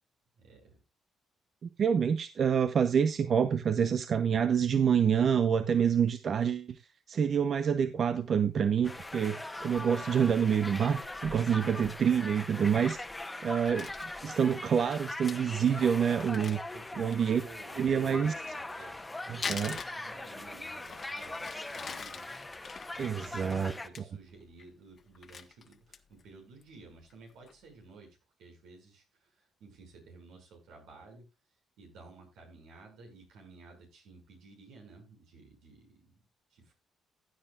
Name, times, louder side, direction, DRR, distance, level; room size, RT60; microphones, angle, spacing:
voice 1, 0.4-0.8 16.0-16.3 16.7-28.1 28.4-31.3 31.8-36.2 36.5-36.8, right 3 dB, 90° right, 6.3 m, -54 dB
voice 2, 1.8-6.8 7.1-13.0 13.4-13.9 14.2-16.6 17.0-17.4 17.8-18.3 19.3-19.7 23.0-23.7, right 7 dB, 55° right, 0.8 m, -27 dB
sound 1, 8.8-23.9, left 2 dB, 15° left, 1.2 m, -41 dB
Crumpling crinkling, 13.4-14.1 14.7-14.8 15.0-15.1 15.3-15.4 15.7-15.8 16.1-17.4 18.5-20.5 20.8-24.0 24.4-24.7 25.0-26.2 26.6-26.7 27.1-27.5, left 6 dB, 45° left, 1.3 m, -43 dB
16.0 x 9.0 x 2.5 m
cardioid pair, 90°, 0 cm